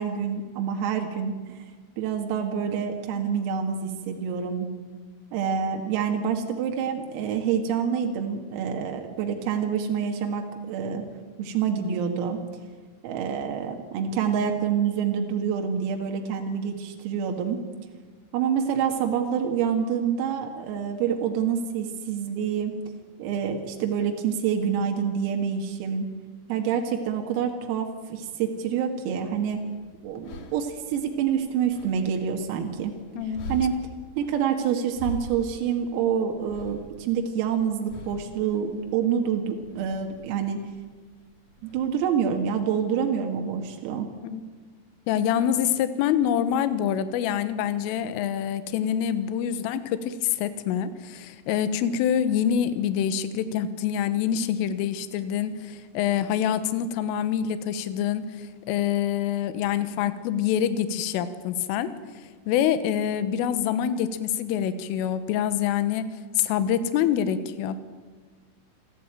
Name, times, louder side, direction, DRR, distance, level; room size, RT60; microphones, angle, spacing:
voice 1, 0.0-1.7 2.0-4.7 5.3-11.0 11.4-12.4 13.0-17.6 18.3-22.8 23.2-26.1 26.5-29.6 30.0-32.9 33.2-33.8 34.2-40.6 41.6-44.1, right 7 dB, 85° right, 3 dB, 4.6 m, -27 dB
sound 1, 29.4-42.4, left 3 dB, 55° left, 2.2 m, -44 dB
voice 2, 33.2-33.5 44.2-44.4 45.1-61.9 62.5-66.1 66.4-67.8, left 9 dB, 80° left, 12 dB, 3.7 m, -26 dB
27.5 x 15.5 x 9.0 m, 1.5 s
omnidirectional pair, 6.0 m